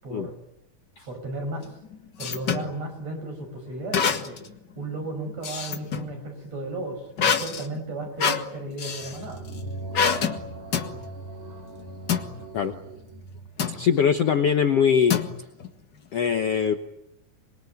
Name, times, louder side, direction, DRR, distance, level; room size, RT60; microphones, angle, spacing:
voice 1, 0.0-0.4 1.1-1.8 2.2-4.4 4.8-9.4, right 2 dB, 45° right, 5 dB, 6.9 m, -34 dB
sound 1, 1.6-2.7 3.9-4.5 4.9-6.1 7.2-9.2 9.9-10.4 10.7-10.9 12.1-12.3 13.6-13.9 15.1-15.7, left 7 dB, 45° left, 1.5 m, -26 dB
sound 2, 9.0-13.6, right 2 dB, 70° right, 5.9 m, -39 dB
voice 2, 13.7-15.2 16.1-16.8, left 7 dB, 70° left, 7 dB, 1.5 m, -22 dB
26.5 x 22.5 x 9.6 m, 0.84 s
omnidirectional pair, 4.3 m